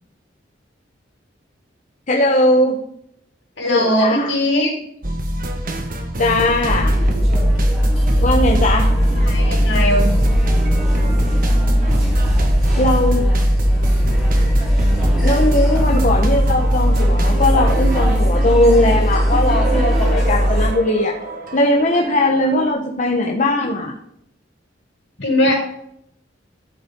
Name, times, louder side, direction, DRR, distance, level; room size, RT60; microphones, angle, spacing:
voice 1, 2.1-2.8 3.6-4.3 6.2-7.0 8.2-8.9 12.8-13.3 15.2-21.1 21.5-24.0, left 1 dB, 40° left, 0 dB, 1.1 m, -19 dB
voice 2, 3.6-4.7 9.2-10.0 21.9-22.0 25.2-25.5, left 1 dB, 75° left, -1 dB, 5.0 m, -19 dB
sound 1, 5.0-22.7, equal, 50° right, 1.5 m, -25 dB
sound 2, 6.7-20.7, equal, 5° right, 4.8 m, -17 dB
14.0 x 7.8 x 3.7 m, 0.73 s
head